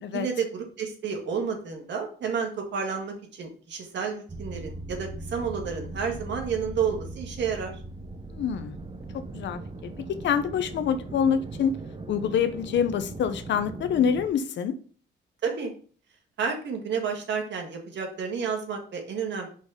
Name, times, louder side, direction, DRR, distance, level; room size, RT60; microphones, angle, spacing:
voice 1, 0.1-7.8 15.4-15.7 16.4-19.5, right 6 dB, 65° right, 1.8 m, -30 dB
sound 1, 4.3-14.3, right 2 dB, 25° right, 0.8 m, -39 dB
voice 2, 8.3-8.8 9.3-11.8 12.1-14.8, left 7 dB, 65° left, 0.8 m, -26 dB
5.4 x 4.1 x 4.9 m
cardioid pair, 90°, 20 cm